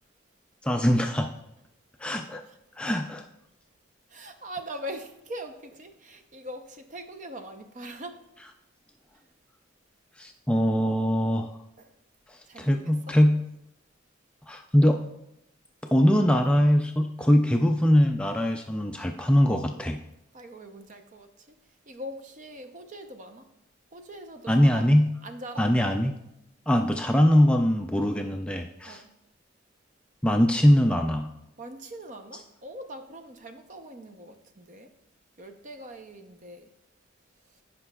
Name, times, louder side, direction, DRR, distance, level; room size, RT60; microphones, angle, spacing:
voice 1, 0.6-1.3 2.0-2.4 2.8-3.3 10.2-11.5 12.3-13.4 14.5-15.0 15.9-20.0 24.5-25.1 25.6-26.2 26.7-29.0 30.2-31.3, equal, 5° left, 3 dB, 0.3 m, -22 dB
voice 2, 4.1-8.2 11.8-11.9 12.5-12.9 20.3-21.6 21.9-23.5 23.9-24.8 25.2-25.7 28.8-29.1 31.6-34.9 35.4-36.7, right 1 dB, 40° right, 6 dB, 0.7 m, -42 dB
15.5 x 5.3 x 2.3 m, 0.83 s
head